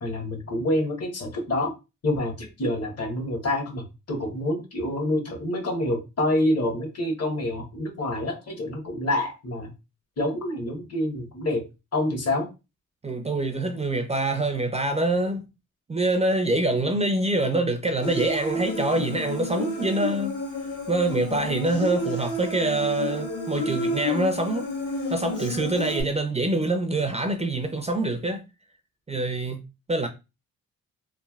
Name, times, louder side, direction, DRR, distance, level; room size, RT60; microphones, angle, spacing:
voice 1, 0.0-1.7 2.0-9.7 10.2-11.7 11.9-12.5, left 1 dB, 50° left, 1.1 m, -27 dB
voice 2, 13.0-15.5 15.9-20.4 20.9-24.7 25.1-28.4 29.1-30.1, right 2 dB, 20° right, 0.4 m, -25 dB
Human voice, 18.0-26.0, left 1 dB, 65° left, 1.4 m, -30 dB
3.2 x 2.6 x 2.3 m
cardioid pair, 90°, 32 cm